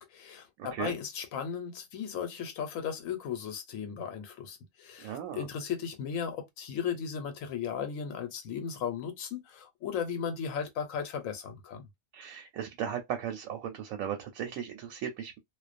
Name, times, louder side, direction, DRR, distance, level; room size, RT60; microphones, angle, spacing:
voice 1, 0.0-11.9, left 7 dB, 85° left, 1.1 m, -36 dB
voice 2, 0.6-0.9 5.0-5.4 12.1-15.4, right 9 dB, 85° right, 1.0 m, -36 dB
2.4 x 2.1 x 2.5 m
omnidirectional pair, 1.4 m